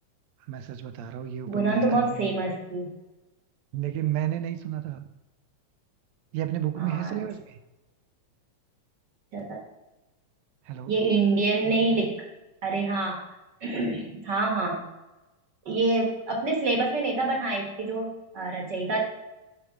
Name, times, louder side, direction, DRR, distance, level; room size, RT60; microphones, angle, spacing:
voice 1, 0.5-2.3 3.7-5.1 6.3-7.6 10.7-11.0, right 11 dB, 75° right, 9 dB, 1.8 m, -31 dB
voice 2, 1.5-2.9 6.8-7.2 9.3-9.6 10.9-12.1 12.6-13.2 13.6-14.8 15.6-19.0, right 3 dB, 45° right, 0 dB, 1.6 m, -26 dB
10.0 x 4.9 x 6.1 m, 1.0 s
omnidirectional pair, 3.4 m